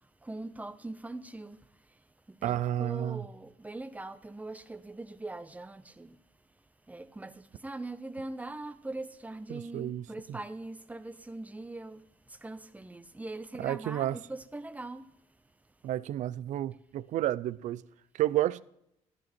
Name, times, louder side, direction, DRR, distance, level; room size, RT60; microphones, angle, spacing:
voice 1, 0.2-1.6 2.3-6.2 6.9-15.1, right 2 dB, 10° right, 0.9 m, -42 dB
voice 2, 2.4-3.2 9.5-10.0 13.6-14.2 15.8-17.8 18.1-18.6, right 13 dB, 75° right, 0.5 m, -31 dB
13.5 x 12.5 x 4.5 m
cardioid pair, 100°, 13 cm